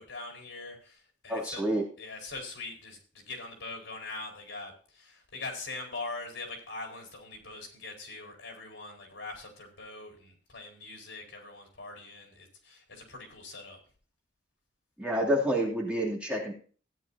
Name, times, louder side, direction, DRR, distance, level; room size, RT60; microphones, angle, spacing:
voice 1, 0.0-1.7 2.0-13.8, left 3 dB, 80° left, 2 dB, 4.6 m, -42 dB
voice 2, 1.3-1.8 15.0-16.5, equal, 5° right, -3 dB, 2.7 m, -28 dB
16.0 x 10.0 x 2.8 m, 0.40 s
head